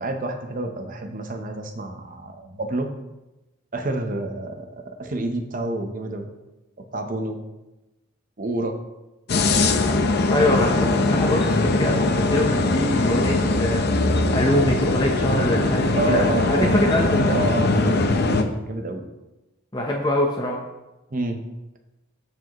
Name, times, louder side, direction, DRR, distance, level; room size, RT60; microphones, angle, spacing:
voice 1, 0.0-2.9 3.7-6.3 6.8-7.4 8.4-8.8 16.0-19.1 21.1-21.4, right 2 dB, 40° right, 5 dB, 0.8 m, -29 dB
sound 1, 9.3-18.4, left 2 dB, 50° left, 0.7 m, -21 dB
voice 2, 10.2-13.8 14.3-17.4 19.7-20.6, left 1 dB, 20° left, -2 dB, 0.8 m, -24 dB
14.0 x 4.8 x 3.0 m, 1.0 s
head